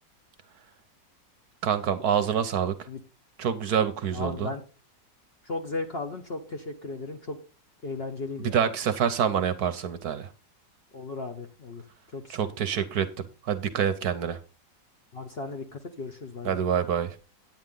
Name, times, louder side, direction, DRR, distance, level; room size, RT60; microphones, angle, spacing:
voice 1, 1.6-2.8 3.4-4.5 8.4-10.3 12.3-14.4 16.4-17.2, right 8 dB, 65° right, 11 dB, 1.1 m, -26 dB
voice 2, 4.1-4.6 5.4-7.4 7.8-8.6 10.9-11.8 12.1-12.5 15.1-16.6, left 3 dB, 40° left, 5 dB, 1.0 m, -36 dB
9.4 x 9.4 x 3.7 m, 0.32 s
omnidirectional pair, 2.0 m